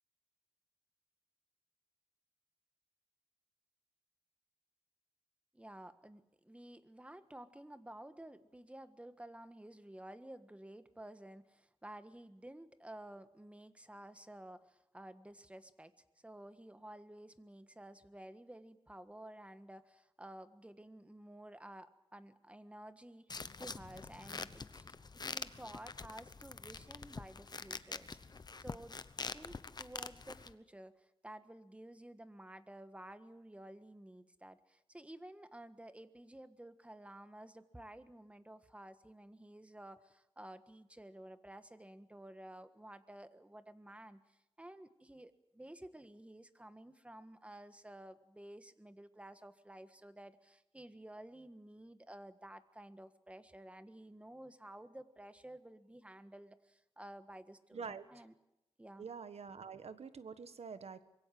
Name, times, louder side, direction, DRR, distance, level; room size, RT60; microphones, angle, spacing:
voice 1, 5.5-15.9 16.2-28.9 29.3-58.3 58.8-59.1, right 1 dB, 10° right, 11 dB, 1.6 m, -53 dB
boots leather bend creaking squeeze, 23.3-30.5, left 4 dB, 40° left, 1.0 m, -46 dB
voice 2, 57.7-58.1 59.0-61.0, right 6 dB, 75° right, 12 dB, 1.5 m, -46 dB
25.0 x 22.5 x 7.8 m, 0.87 s
wide cardioid pair, 95°, 11 cm